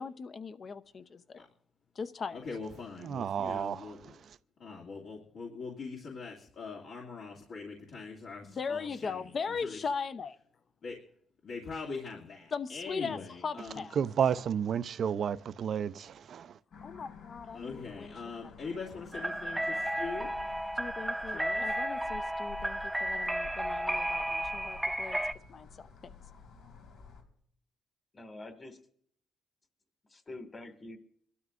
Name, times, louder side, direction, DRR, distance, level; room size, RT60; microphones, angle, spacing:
voice 1, 0.0-1.5 1.9-2.4 8.4-10.4 12.5-14.0 16.8-18.1 20.8-25.2 25.5-26.1, left 5 dB, 45° left, 0.7 m, -39 dB
voice 2, 2.3-4.2 4.6-9.3 9.6-9.8 10.8-11.0 11.4-13.8 17.5-20.3 21.3-21.7, left 4 dB, 65° left, 2.3 m, -42 dB
voice 3, 3.0-4.4 14.0-16.6, right 8 dB, 60° right, 0.5 m, -32 dB
sound 1, 16.7-27.2, left 5 dB, 90° left, 3.0 m, -51 dB
sound 2, 19.1-25.3, right 1 dB, 10° right, 0.5 m, -33 dB
voice 4, 28.1-28.8 30.1-31.0, left 2 dB, 30° left, 1.9 m, -46 dB
25.0 x 12.5 x 2.5 m
cardioid pair, 90°, 0 cm